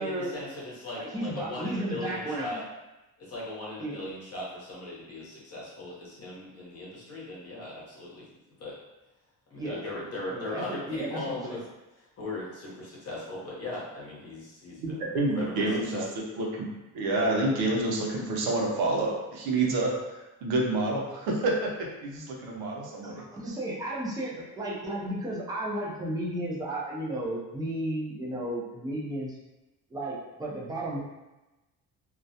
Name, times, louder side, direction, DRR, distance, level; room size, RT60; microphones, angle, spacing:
voice 1, 0.0-2.6 3.2-8.2 8.6-8.8 9.5-11.6 12.2-16.1, left 2 dB, 40° left, -6 dB, 0.8 m, -38 dB
voice 2, 1.0-2.6 3.8-4.0 9.6-9.9 10.3-11.6 23.0-29.3 29.9-31.0, right 1 dB, 10° right, -5 dB, 0.4 m, -33 dB
voice 3, 14.8-16.0 16.4-16.7 16.9-21.7 22.0-23.2, right 2 dB, 90° right, -1 dB, 0.7 m, -28 dB
2.3 x 2.0 x 2.7 m, 1.0 s
cardioid pair, 155°, 37 cm